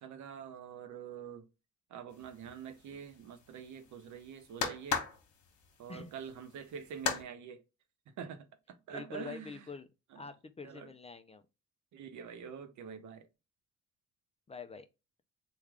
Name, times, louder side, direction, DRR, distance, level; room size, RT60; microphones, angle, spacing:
voice 1, 0.0-1.4 1.9-5.0 5.8-7.6 8.2-9.7 10.1-10.2 10.6-10.9 11.9-13.3, right 7 dB, 70° right, 0.8 m, -46 dB
sound 1, 2.1-7.2, left 6 dB, 70° left, 1.1 m, -39 dB
voice 2, 8.9-9.9 10.2-11.4 14.5-14.9, left 5 dB, 20° left, 0.4 m, -45 dB
3.4 x 2.3 x 3.4 m
cardioid pair, 90°, 30 cm